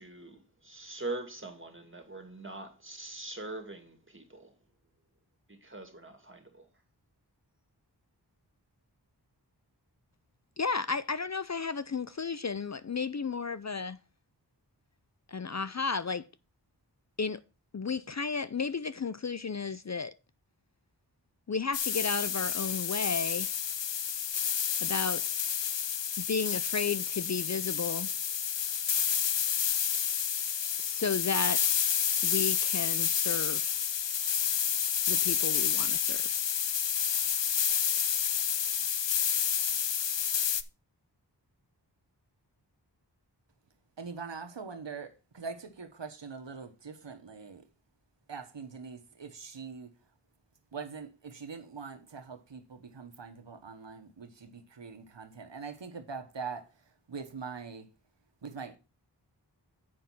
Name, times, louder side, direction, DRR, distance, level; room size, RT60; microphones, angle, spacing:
voice 1, 0.0-4.6 5.5-6.7, right 2 dB, 30° right, 2.3 m, -42 dB
voice 2, 10.6-14.0 15.3-16.2 17.2-17.4 17.7-20.1 21.5-23.6 24.8-25.2 26.2-28.1 30.8-31.8 32.2-33.7 35.1-36.4, left 5 dB, 40° left, 0.5 m, -33 dB
sound 1, 21.7-40.6, left 8 dB, 80° left, 0.6 m, -29 dB
voice 3, 44.0-47.6 48.3-49.9 50.7-57.9 58.4-58.8, right 5 dB, 85° right, 1.2 m, -43 dB
7.7 x 5.4 x 5.9 m
wide cardioid pair, 40°, 42 cm